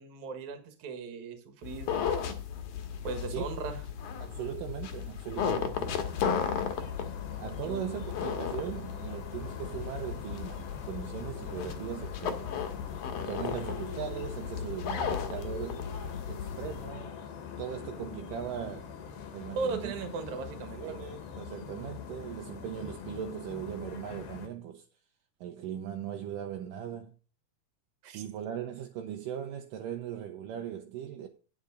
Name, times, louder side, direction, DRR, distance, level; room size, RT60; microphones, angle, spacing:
voice 1, 0.0-2.1 3.0-3.8 7.6-7.9 19.5-20.8 28.0-28.2, right 4 dB, 60° right, 2.6 m, -37 dB
sound 1, 1.6-16.9, left 7 dB, 65° left, 2.5 m, -35 dB
voice 2, 4.2-6.0 7.4-12.5 13.3-15.9 16.3-17.1 17.6-19.0 19.3-20.0 20.7-24.9 25.4-27.2 28.1-31.3, right 9 dB, 75° right, 2.2 m, -39 dB
sound 2, 5.7-24.5, left 7 dB, 85° left, 3.5 m, -43 dB
9.2 x 8.3 x 3.8 m
omnidirectional pair, 4.3 m